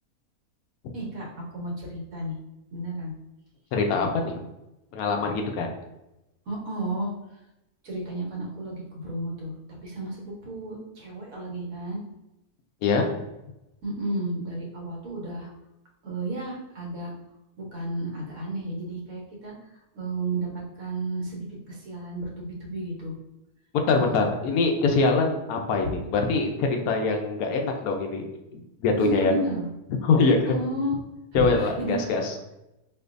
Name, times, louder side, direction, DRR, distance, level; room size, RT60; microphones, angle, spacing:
voice 1, 0.9-2.4 2.7-3.1 6.5-7.1 7.8-9.5 9.8-12.0 13.8-15.5 16.0-17.1 17.6-19.5 19.9-23.1 23.9-24.1 29.0-29.7 30.2-31.0 31.3-32.0, right 1 dB, 65° right, -2 dB, 1.3 m, -32 dB
voice 2, 3.7-4.3 4.9-5.7 12.8-13.1 23.9-28.3 28.5-29.3 30.0-30.5 31.3-32.3, left 4 dB, 75° left, 3 dB, 1.0 m, -23 dB
4.6 x 2.5 x 2.5 m, 0.92 s
omnidirectional pair, 1.6 m